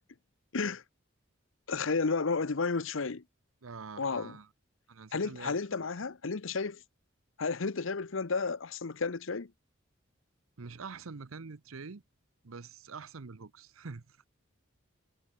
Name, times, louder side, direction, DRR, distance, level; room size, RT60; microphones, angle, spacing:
voice 1, 1.7-3.2 4.0-4.4 5.1-6.8 7.4-9.5, left 4 dB, 65° left, 0.8 m, -32 dB
voice 2, 3.6-4.5 4.9-5.9 10.6-12.0 12.4-14.2, right 4 dB, 80° right, 0.8 m, -45 dB
head